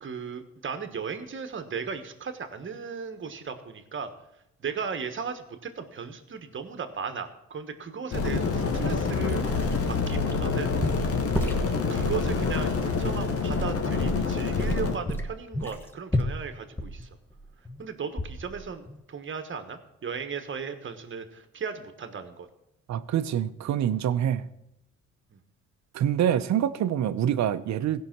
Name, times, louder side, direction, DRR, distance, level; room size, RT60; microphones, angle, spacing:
voice 1, 0.0-4.1 4.6-10.7 11.3-17.1 17.8-22.5 25.3-25.4, right 6 dB, 40° right, 8 dB, 1.3 m, -36 dB
sound 1, 8.1-15.0, left 4 dB, 50° left, 1.4 m, -27 dB
sound 2, 9.3-10.5 10.8-12.2 12.8-12.9 13.5-14.3 14.5-17.8 18.2-18.6 18.9-19.0, equal, 5° left, 1.2 m, -31 dB
voice 2, 22.9-24.5 25.9-28.0, right 10 dB, 65° right, 13 dB, 0.7 m, -26 dB
16.0 x 5.6 x 6.0 m, 0.84 s
cardioid pair, 90°, 30 cm